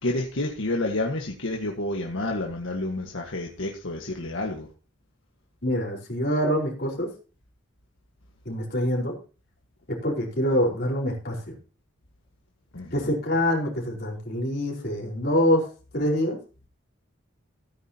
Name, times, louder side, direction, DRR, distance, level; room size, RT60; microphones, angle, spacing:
voice 1, 0.0-4.7 12.7-12.9, left 2 dB, 80° left, 0 dB, 1.6 m, -29 dB
voice 2, 5.6-7.1 8.4-9.1 9.9-11.5 12.9-15.7 15.9-16.4, equal, 50° left, -2 dB, 4.5 m, -25 dB
16.0 x 9.4 x 2.9 m, 0.35 s
head